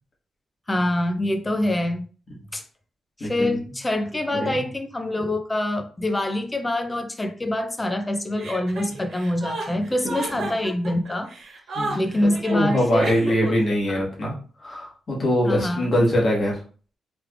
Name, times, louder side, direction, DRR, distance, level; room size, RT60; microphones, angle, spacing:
voice 1, 0.7-2.0 2.5-2.6 3.2-11.3 12.0-13.5 13.9-14.0 15.5-15.9, left 1 dB, 10° left, 6 dB, 0.4 m, -25 dB
voice 2, 3.2-3.6 4.3-4.6 10.3-10.5 11.7-14.3 14.6-16.6, equal, 30° left, -3 dB, 1.3 m, -23 dB
Chuckle chortle, 8.4-13.6, right 2 dB, 65° right, 1.3 m, -33 dB
3.3 x 3.2 x 2.3 m, 0.39 s
wide cardioid pair, 175°, 0 cm